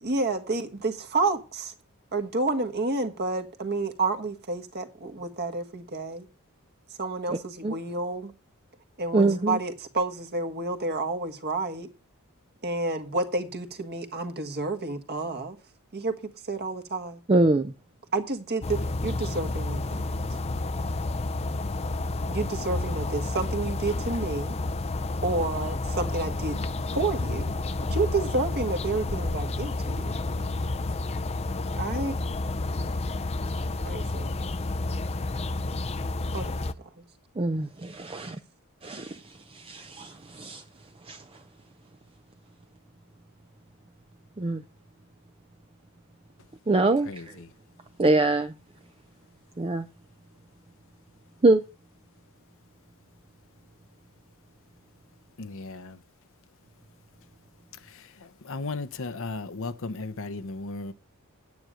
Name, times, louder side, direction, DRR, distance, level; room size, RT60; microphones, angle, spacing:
voice 1, 0.0-1.7 2.1-6.3 7.0-8.3 9.0-11.9 12.6-15.6 15.9-16.1 16.5-17.2 18.1-20.4 22.3-24.5 25.2-26.6 26.9-27.5 27.9-30.1 31.7-32.1 33.8-34.3 36.3-36.7, right 3 dB, 45° right, 1.5 m, -30 dB
voice 2, 9.1-9.6 17.3-17.7 37.4-38.4 38.8-39.2 39.5-40.6 41.1-41.2 44.4-44.6 46.7-47.3 48.0-48.5 49.6-49.9 51.4-51.6, right 2 dB, 25° right, 0.5 m, -24 dB
sound 1, 18.6-36.7, left 2 dB, 30° left, 0.5 m, -30 dB
voice 3, 55.4-56.0 58.4-60.9, left 3 dB, 65° left, 0.8 m, -35 dB
9.5 x 8.9 x 5.0 m
head